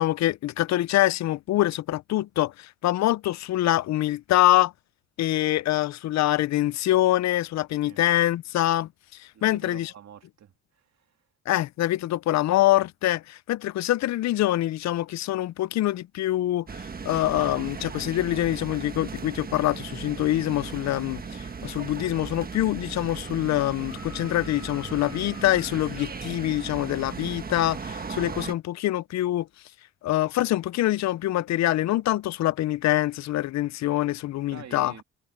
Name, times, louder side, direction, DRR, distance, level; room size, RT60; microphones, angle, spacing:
voice 1, 0.0-4.7 5.2-9.9 11.5-29.5 30.0-34.9, left 15 dB, 65° left, 0.5 m, -25 dB
voice 2, 9.3-11.2 34.5-35.0, right 9 dB, 60° right, 2.8 m, -46 dB
sound 1, 16.7-28.5, right 5 dB, 30° right, 1.5 m, -37 dB
sound 2, 23.3-26.5 28.3-28.4, left 5 dB, 40° left, 1.7 m, -48 dB
cardioid pair, 90°, 30 cm